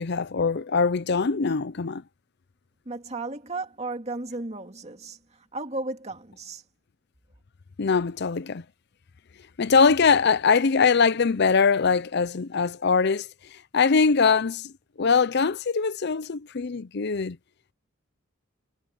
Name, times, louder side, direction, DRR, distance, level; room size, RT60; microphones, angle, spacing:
voice 1, 0.0-2.0 7.8-8.6 9.6-13.3 13.7-14.7 15.0-17.4, left 5 dB, 50° left, 0.6 m, -22 dB
voice 2, 2.9-6.6, right 2 dB, 30° right, 2.4 m, -34 dB
head